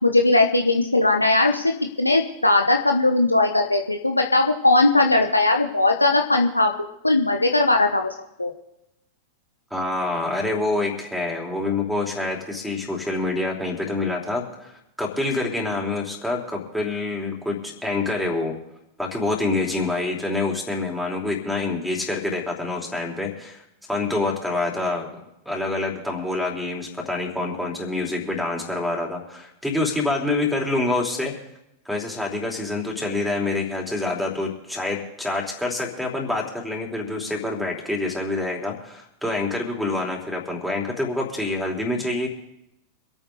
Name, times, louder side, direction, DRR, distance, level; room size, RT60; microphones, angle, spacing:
voice 1, 0.0-1.7 2.0-6.7 7.0-8.1 8.4-8.5, left 2 dB, 85° left, 4 dB, 1.1 m, -19 dB
voice 2, 9.7-18.5 19.0-23.6 23.9-31.3 31.8-42.3, left 2 dB, ahead, 1 dB, 4.3 m, -26 dB
26.5 x 9.0 x 4.2 m, 0.85 s
figure-of-eight pair, 90°, 0 cm